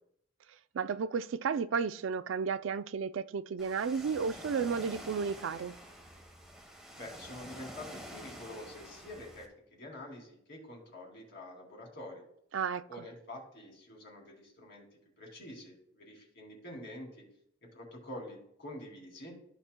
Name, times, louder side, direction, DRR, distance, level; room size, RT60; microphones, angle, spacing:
voice 1, 0.7-5.7 12.5-12.8, right 6 dB, 75° right, 0.4 m, -33 dB
Ocean, 3.6-9.5, equal, 5° right, 1.2 m, -48 dB
voice 2, 7.0-12.2 12.9-17.2 17.6-19.3, left 1 dB, 60° left, 2.8 m, -47 dB
14.0 x 5.9 x 2.2 m
head